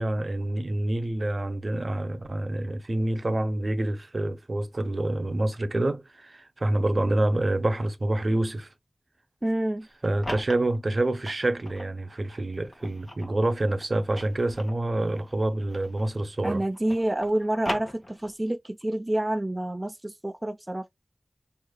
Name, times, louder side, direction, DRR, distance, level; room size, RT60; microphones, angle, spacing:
voice 1, 0.0-8.7 10.0-16.6, right 1 dB, 55° right, 0.8 m, -27 dB
voice 2, 9.4-9.9 16.4-20.9, right 1 dB, 25° right, 0.6 m, -28 dB
sound 1, 9.8-11.9 12.5-16.3 16.5-18.5, left 1 dB, 35° left, 1.7 m, -40 dB
6.4 x 2.8 x 2.3 m
wide cardioid pair, 55°, 0 cm